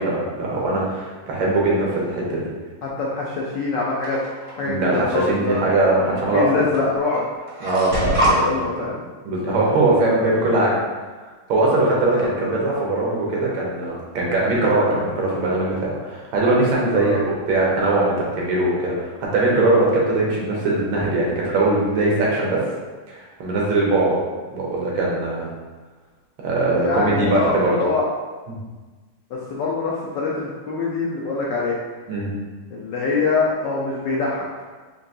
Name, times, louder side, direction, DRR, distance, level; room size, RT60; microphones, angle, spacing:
voice 1, 0.0-2.5 4.6-6.6 7.6-8.5 9.2-10.8 11.5-17.2 17.5-22.6 23.1-24.2 24.5-25.5 26.4-27.8 28.5-28.6 32.1-32.3, right 2 dB, 75° right, -3 dB, 1.6 m, -21 dB
voice 2, 2.8-4.2 4.6-5.6 6.1-7.3 8.4-9.0 10.0-10.3 12.2-12.6 16.9-17.2 26.6-28.0 29.3-31.8 32.7-34.5, left 4 dB, 70° left, -4 dB, 1.1 m, -24 dB
sound 1, 4.0-4.6 5.7-5.8 6.7-6.9 7.1-8.4, equal, 55° right, 0.7 m, -23 dB
4.6 x 2.7 x 2.7 m, 1.3 s
omnidirectional pair, 2.3 m